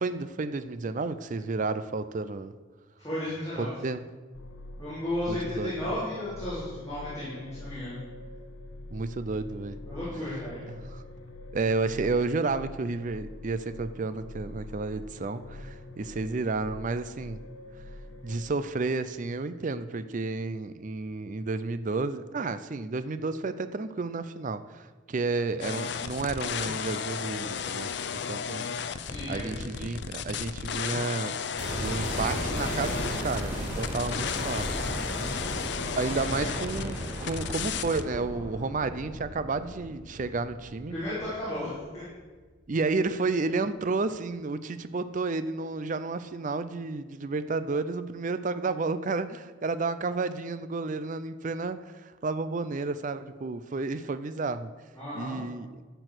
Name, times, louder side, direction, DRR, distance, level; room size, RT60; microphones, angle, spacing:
voice 1, 0.0-2.5 3.6-4.0 5.3-5.9 8.9-9.8 10.7-11.0 11.5-17.4 18.2-28.7 29.3-31.4 31.7-34.7 36.0-41.0 42.7-54.7 55.1-55.7, right 3 dB, 40° right, 12 dB, 0.4 m, -31 dB
voice 2, 3.0-3.7 4.8-8.0 9.9-10.6 29.0-29.5 35.1-35.5 40.9-42.0 55.0-55.4, left 1 dB, 15° left, -11 dB, 3.8 m, -34 dB
sound 1, 4.3-18.4, left 1 dB, 90° left, 0.7 m, -44 dB
sound 2, 25.6-38.0, left 6 dB, 60° left, 0.5 m, -34 dB
sound 3, 31.6-41.6 41.9-42.0, equal, 10° right, 3.2 m, -35 dB
12.0 x 4.6 x 7.8 m, 1.4 s
head